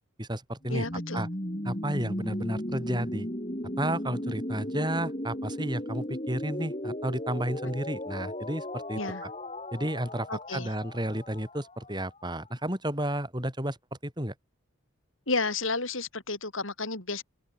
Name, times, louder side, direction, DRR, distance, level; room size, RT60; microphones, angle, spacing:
voice 1, 0.2-0.9 1.1-1.3 1.6-3.3 3.8-9.3 9.7-13.8 14.0-14.3, right 1 dB, 20° right, 7.8 m, -32 dB
sound 1, 0.6-12.4, left 1 dB, 30° left, 4.7 m, -36 dB
voice 2, 0.7-1.3 8.9-9.2 10.3-10.7 15.3-17.2, left 3 dB, 70° left, 6.4 m, -32 dB
head